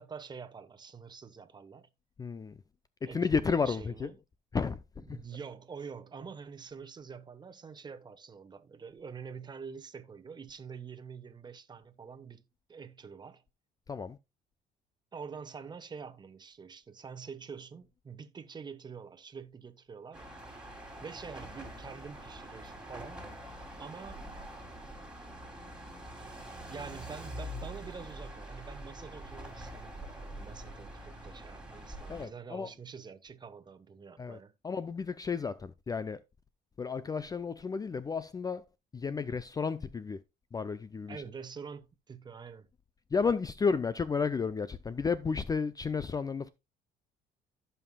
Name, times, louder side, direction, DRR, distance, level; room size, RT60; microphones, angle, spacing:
voice 1, 0.0-1.9 3.1-4.2 5.0-13.4 15.1-20.3 21.0-23.3 23.8-24.2 26.7-34.6 41.1-42.7, right 6 dB, 25° right, 1.0 m, -46 dB
voice 2, 2.2-2.6 3.0-4.1 4.5-5.2 13.9-14.2 32.1-32.7 34.2-34.4 34.6-36.2 36.8-38.6 38.9-40.2 40.5-41.2 43.1-46.5, left 5 dB, 20° left, 0.4 m, -32 dB
sound 1, 20.1-32.3, right 1 dB, 5° right, 2.8 m, -45 dB
16.0 x 5.6 x 2.2 m
cardioid pair, 110°, 17 cm